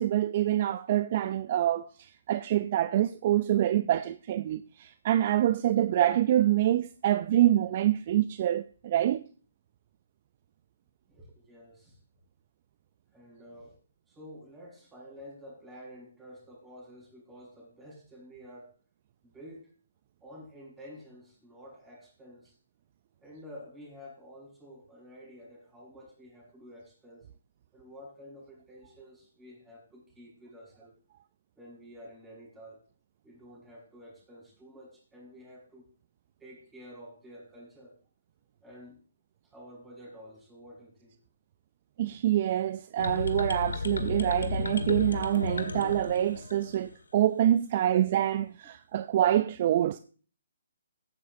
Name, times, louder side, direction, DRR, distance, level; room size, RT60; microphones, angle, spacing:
voice 1, 0.0-9.3 42.0-50.0, right 12 dB, 40° right, 0.4 m, -26 dB
voice 2, 11.1-12.0 13.1-13.8 14.1-18.7 19.2-19.7 20.2-22.6 23.2-27.3 27.7-30.9 31.5-32.9 33.2-35.9 36.4-38.0 38.6-39.0 39.4-41.1 42.0-42.2, equal, 10° right, 6.6 m, -50 dB
sound 1, 43.0-46.9, left 3 dB, 85° left, 1.7 m, -33 dB
15.5 x 11.0 x 2.7 m
hypercardioid pair, 145°, 0 cm